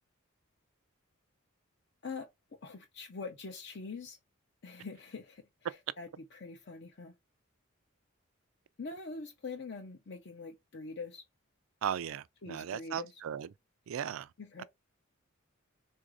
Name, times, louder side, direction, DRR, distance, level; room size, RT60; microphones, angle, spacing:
voice 1, 2.6-4.2 4.6-5.4 6.0-7.1 8.8-11.2 12.4-13.1 14.4-14.6, left 4 dB, 50° left, 0.6 m, -44 dB
voice 2, 11.8-13.5 13.9-14.3, right 8 dB, 70° right, 0.3 m, -37 dB
3.8 x 2.6 x 4.7 m
head